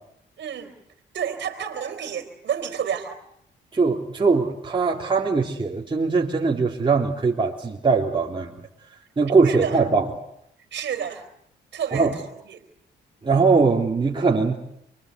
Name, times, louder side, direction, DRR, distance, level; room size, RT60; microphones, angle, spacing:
voice 1, 0.4-0.7 1.1-3.2 9.4-9.8 10.7-11.3 11.7-12.6, right 8 dB, 60° right, 4 dB, 3.6 m, -30 dB
voice 2, 3.7-8.5 9.2-10.1 11.9-12.1 13.2-14.6, right 4 dB, 25° right, -2 dB, 3.4 m, -21 dB
29.0 x 23.0 x 8.2 m, 0.76 s
cardioid pair, 90°, 20 cm